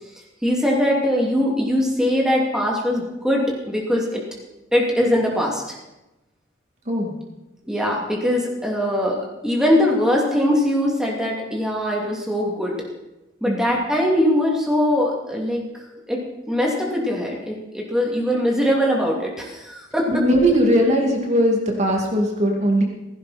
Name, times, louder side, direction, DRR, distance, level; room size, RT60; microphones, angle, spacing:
voice 1, 0.4-4.2 4.7-5.8 7.7-12.7 13.4-16.2 16.5-20.2, equal, 5° right, -2 dB, 2.8 m, -21 dB
voice 2, 20.1-22.8, equal, 40° right, 0 dB, 2.5 m, -19 dB
16.5 x 16.0 x 4.4 m, 0.98 s
head